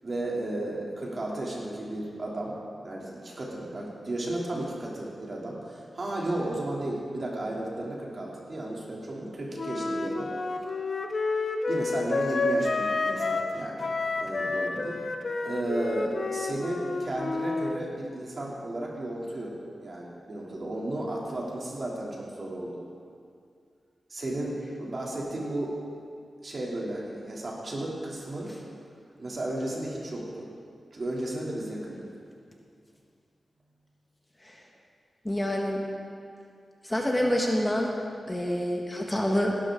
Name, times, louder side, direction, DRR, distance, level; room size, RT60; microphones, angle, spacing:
voice 1, 0.0-2.5 2.8-10.4 11.7-15.0 15.4-22.8 24.1-25.8 26.4-28.5 29.2-30.5 30.9-32.1, right 1 dB, 50° right, -3 dB, 3.1 m, -34 dB
Wind instrument woodwind instrument, 9.6-13.5 13.8-17.8, left 3 dB, 55° left, 0.9 m, -29 dB
voice 2, 35.2-35.8 36.8-37.9 38.3-39.5, equal, 15° left, 0 dB, 1.6 m, -27 dB
18.0 x 11.5 x 3.8 m, 2.3 s
cardioid pair, 65°, 0 cm